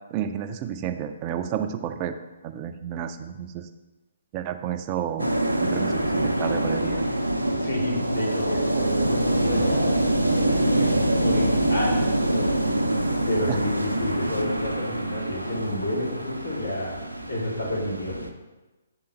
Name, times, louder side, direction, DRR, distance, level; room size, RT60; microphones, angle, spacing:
voice 1, 0.1-2.2 2.4-3.7 4.3-5.3 5.6-7.1 13.5-13.6, right 9 dB, 25° right, 7 dB, 0.5 m, -31 dB
sound 1, 5.2-18.3, right 1 dB, 90° right, 0.6 m, -25 dB
voice 2, 7.6-10.0 10.3-10.9 11.2-12.5 12.8-16.9 17.3-18.1, left 1 dB, 75° left, -6 dB, 2.5 m, -30 dB
8.9 x 3.8 x 4.3 m, 1.1 s
figure-of-eight pair, 130°, 0 cm